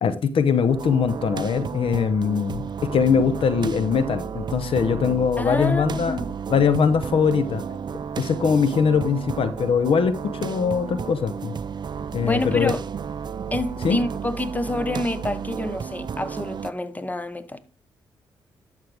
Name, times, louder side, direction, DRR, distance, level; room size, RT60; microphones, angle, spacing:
voice 1, 0.0-6.2 6.5-7.6 8.2-11.5 12.1-12.7 13.8-14.0, left 6 dB, 65° left, 0.9 m, -22 dB
sound 1, 0.7-16.7, right 6 dB, 45° right, 0.5 m, -32 dB
voice 2, 5.4-6.3 12.2-12.8 13.5-17.6, left 2 dB, 15° left, 1.1 m, -28 dB
11.5 x 6.6 x 3.5 m
supercardioid pair, 55°, 10 cm